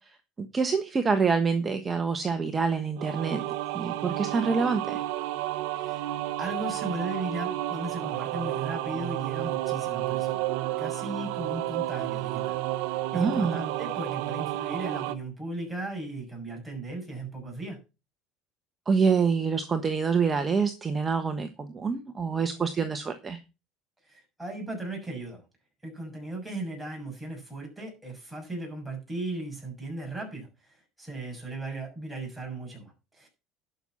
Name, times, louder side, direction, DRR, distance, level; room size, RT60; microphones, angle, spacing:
voice 1, 0.4-3.4 3.7-5.0 13.1-13.6 18.9-23.4, right 5 dB, 25° right, 7 dB, 1.3 m, -26 dB
sound 1, 3.0-15.2, right 15 dB, 75° right, 0.8 m, -31 dB
voice 2, 6.4-10.5 10.8-12.6 12.9-17.8 24.1-25.4 25.8-30.5 31.0-33.3, right 2 dB, 5° right, 0 dB, 6.6 m, -36 dB
11.5 x 6.4 x 5.7 m, 0.29 s
supercardioid pair, 110°, 0 cm